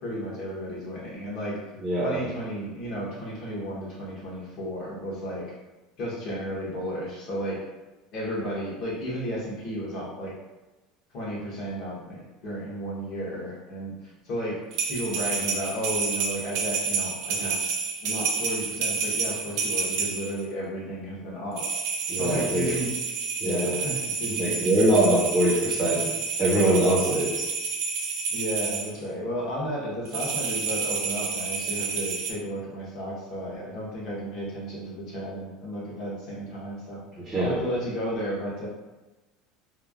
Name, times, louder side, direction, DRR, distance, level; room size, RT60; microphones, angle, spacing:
voice 1, 0.0-1.6 2.0-5.5 6.0-7.6 8.1-10.3 11.1-14.6 14.9-17.6 18.0-21.7 22.1-22.9 23.4-25.2 28.3-37.0 37.4-38.7, equal, 45° left, -6 dB, 1.0 m, -33 dB
voice 2, 1.8-2.2 22.1-22.7 23.4-23.8 24.3-26.1 26.4-27.5 37.2-37.5, right 1 dB, 10° right, -8 dB, 0.6 m, -23 dB
sound 1, 14.7-20.4 21.6-28.9 30.1-32.3, right 5 dB, 60° right, 0.4 m, -29 dB
3.1 x 2.1 x 2.4 m, 1.1 s
cardioid pair, 175°, 0 cm